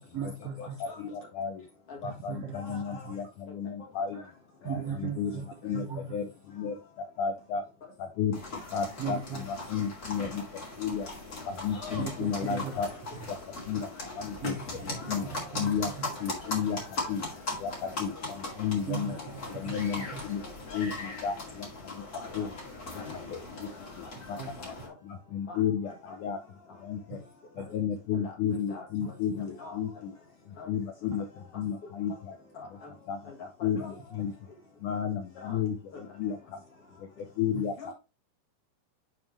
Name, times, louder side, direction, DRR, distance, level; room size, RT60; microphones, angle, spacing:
voice 1, 0.1-0.8 2.0-3.1 4.6-6.2 9.0-9.8 12.0-12.8 13.1-13.3 14.4-15.1 15.5-16.1 18.8-20.2 24.2-24.7 27.1-27.3 27.6-27.7 29.0-29.1 33.8-33.9 37.5-37.7, right 7 dB, 85° right, 1.4 m, -38 dB
voice 2, 0.8-1.6 2.0-4.2 5.0-5.3 5.6-5.8 6.1-6.3 6.5-6.8 7.2-7.7 8.2-8.4 8.7-9.2 9.7-10.4 10.8-11.1 11.5-12.9 13.7-14.6 14.8-15.3 15.6-15.9 16.2-16.8 17.1-17.2 17.6-19.2 19.5-20.4 20.7-21.7 21.9-22.0 22.3-22.5 23.3-23.7 24.3-24.4 25.3-25.9 26.2-26.4 26.8-27.2 27.6-30.1 30.7-31.2 31.6-32.1 33.1-33.2 33.6-33.8 34.2-34.3 34.8-35.8 36.2-36.4 37.0-37.1 37.4-37.7, left 7 dB, 80° left, 1.8 m, -32 dB
voice 3, 2.5-3.1 4.1-4.2 4.6-4.8 5.6-5.7 8.6-8.7 12.5-12.6 14.9-15.1 17.0-17.1 20.4-21.1 22.1-22.5 22.9-23.0 24.3-24.9 25.5-25.6 25.8-26.2 28.1-28.3 28.7-28.9 29.3-29.8 30.6-30.7 31.8-31.9 32.5-32.9 33.2-33.9 35.4-35.6 35.9-36.0 37.8-37.9, left 4 dB, 50° left, 2.1 m, -45 dB
sound 1, 8.3-24.9, left 2 dB, 30° left, 1.8 m, -39 dB
11.0 x 3.8 x 3.2 m
omnidirectional pair, 4.6 m